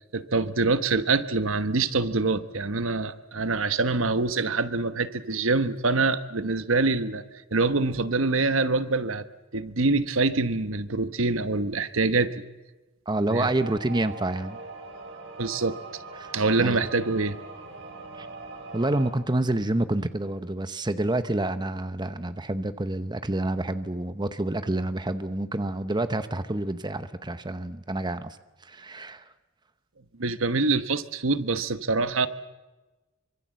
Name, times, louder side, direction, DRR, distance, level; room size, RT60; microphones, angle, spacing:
voice 1, 0.1-7.2 7.5-9.2 9.5-12.3 13.2-13.5 15.4-15.8 16.3-17.4 30.2-32.3, right 3 dB, 80° right, 12 dB, 1.2 m, -25 dB
voice 2, 13.1-14.6 16.2-16.3 16.6-16.8 18.1-18.3 18.7-28.4 28.6-29.2, right 1 dB, 20° right, 11 dB, 0.9 m, -28 dB
sound 1, 13.3-19.1, right 3 dB, 60° right, 5.0 m, -41 dB
25.5 x 24.5 x 7.6 m, 1.1 s
head